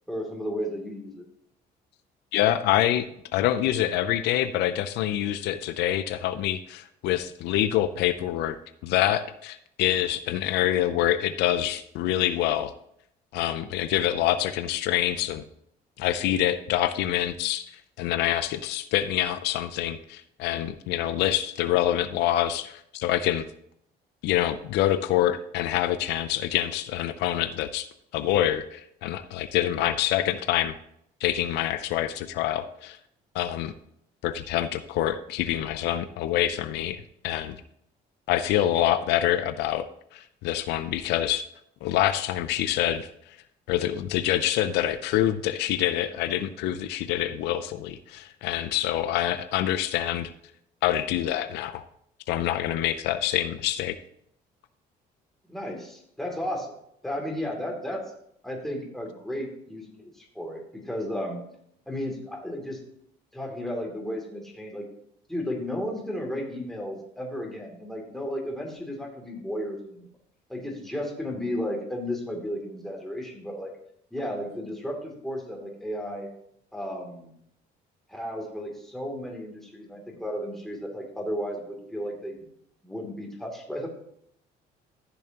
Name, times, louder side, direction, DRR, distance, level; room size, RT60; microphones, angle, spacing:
voice 1, 0.1-1.2 55.5-56.7 57.0-58.0 58.4-61.4 61.9-62.8 63.3-64.8 65.3-70.1 70.5-73.7 74.1-76.3 76.7-77.3 78.1-82.5 82.8-83.9, equal, ahead, -1 dB, 2.8 m, -34 dB
voice 2, 2.3-3.1 3.3-12.7 13.3-15.4 16.0-17.7 18.0-23.5 24.2-27.9 28.1-30.7 31.2-33.0 33.3-33.7 34.2-37.6 38.3-39.9 40.1-41.4 41.8-43.1 43.7-50.3 50.8-51.8 52.3-54.0, left 12 dB, 85° left, 11 dB, 0.6 m, -26 dB
14.0 x 7.0 x 3.0 m, 0.72 s
cardioid pair, 110°, 17 cm